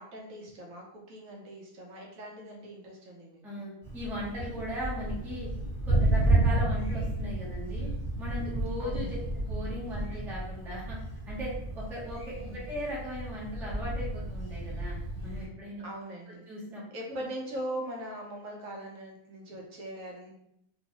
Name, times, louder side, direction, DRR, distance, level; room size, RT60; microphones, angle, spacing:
voice 1, 0.0-3.7 8.8-9.3 12.4-12.7 15.8-16.5 16.9-20.3, right 1 dB, 65° right, -1 dB, 1.0 m, -41 dB
voice 2, 3.4-5.5 5.8-7.9 8.2-11.0 11.3-14.9 15.2-15.8 16.5-16.8, equal, ahead, -6 dB, 0.5 m, -38 dB
Thunder, 3.8-15.5, right 2 dB, 25° left, 1.2 m, -31 dB
3.0 x 2.6 x 2.9 m, 0.77 s
omnidirectional pair, 1.5 m